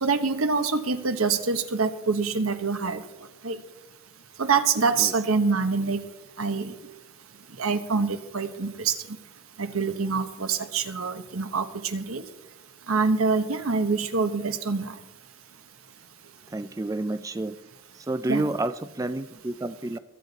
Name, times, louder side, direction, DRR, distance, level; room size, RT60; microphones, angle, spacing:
voice 1, 0.0-3.0 3.4-3.6 4.4-6.0 6.4-6.7 7.6-9.0 9.6-12.2 12.9-14.9 18.3-18.4, right 4 dB, 90° right, 9 dB, 1.1 m, -25 dB
voice 2, 16.5-17.6 17.9-20.0, right 2 dB, 15° right, 12 dB, 0.3 m, -30 dB
22.0 x 8.5 x 4.1 m, 1.0 s
head